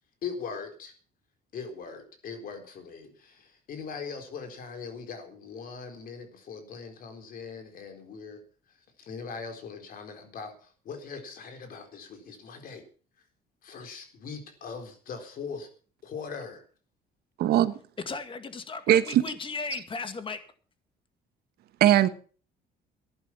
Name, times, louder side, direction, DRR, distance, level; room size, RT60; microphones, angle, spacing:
voice 1, 0.2-0.9 1.5-8.4 9.0-12.8 13.6-15.7 16.0-16.6, left 5 dB, 55° left, 4.0 m, -40 dB
voice 2, 17.4-17.7 18.9-19.2 21.8-22.1, right 12 dB, 70° right, 1.3 m, -20 dB
voice 3, 18.1-20.4, left 4 dB, 30° left, 2.0 m, -36 dB
14.5 x 11.0 x 5.9 m
cardioid pair, 110°, 17 cm